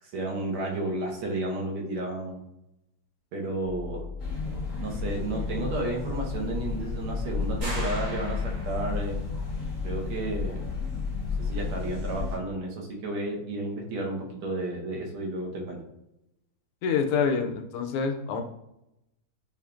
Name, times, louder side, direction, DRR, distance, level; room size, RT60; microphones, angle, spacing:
voice 1, 0.0-2.4 3.3-4.0 4.8-9.2 9.8-10.6 11.4-15.8, right 2 dB, 75° right, 0 dB, 1.8 m, -32 dB
sound 1, 3.6-11.6, left 5 dB, 70° left, 1.5 m, -38 dB
sound 2, 4.2-12.4, left 4 dB, 45° left, 1.3 m, -32 dB
sound 3, 7.6-9.1, right 1 dB, 25° right, 1.0 m, -37 dB
voice 2, 16.8-18.4, left 6 dB, 90° left, 5 dB, 1.5 m, -26 dB
6.2 x 2.5 x 2.3 m, 0.87 s
omnidirectional pair, 2.4 m